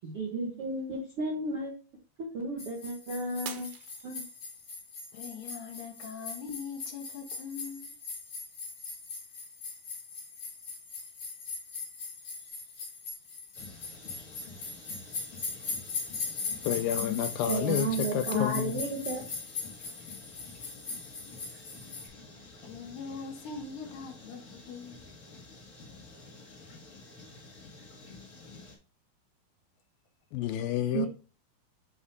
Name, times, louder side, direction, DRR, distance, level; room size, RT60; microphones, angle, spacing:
voice 1, 0.0-1.7 2.2-3.7 4.0-4.2 17.5-19.2 30.9-31.1, right 3 dB, 70° right, 1.3 m, -33 dB
sound 1, 2.6-22.1, left 4 dB, 45° left, 4.5 m, -40 dB
Shatter, 3.5-4.7 5.3-5.7 6.3-6.4, right 9 dB, 90° right, 2.6 m, -44 dB
voice 2, 5.1-7.9 13.6-14.0 16.2-16.7 22.6-25.1, left 5 dB, 65° left, 2.4 m, -42 dB
sound 2, 13.5-28.8, left 3 dB, 30° left, 1.6 m, -50 dB
voice 3, 16.6-18.7 30.3-31.1, left 11 dB, 85° left, 2.3 m, -30 dB
7.4 x 6.0 x 2.7 m
omnidirectional pair, 4.2 m